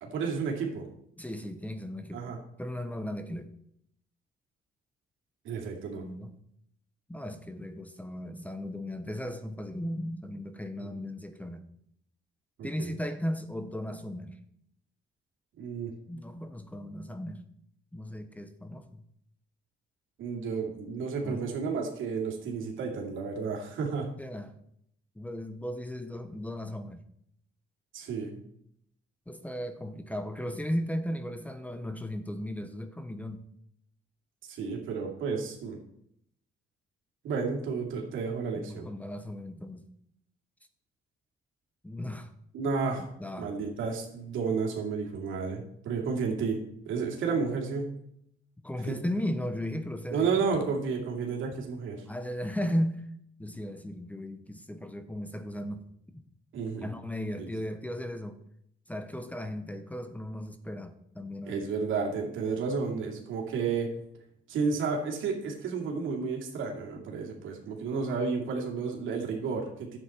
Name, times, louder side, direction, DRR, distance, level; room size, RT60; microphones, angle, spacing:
voice 1, 0.0-0.8 2.1-2.4 5.4-6.0 10.8-10.9 12.6-12.9 15.6-15.9 20.2-24.1 27.9-28.4 34.5-35.8 37.2-38.9 42.5-43.0 43.4-46.6 46.9-47.9 48.9-49.0 50.1-52.0 56.5-56.9 57.3-57.5 61.5-63.9 64.5-70.0, right 5 dB, 80° right, 0 dB, 2.4 m, -32 dB
voice 2, 1.2-2.2 2.6-3.5 6.0-6.3 7.1-11.6 12.6-14.4 16.1-17.4 17.9-19.0 21.2-21.4 24.2-24.5 25.2-27.0 29.3-33.5 38.6-39.8 41.8-42.3 43.2-43.5 48.6-50.3 52.0-53.1 53.4-55.8 56.1-56.2 56.8-58.4 58.9-61.6, equal, 5° left, 9 dB, 0.9 m, -36 dB
11.0 x 8.1 x 4.4 m, 0.74 s
cardioid pair, 90°, 20 cm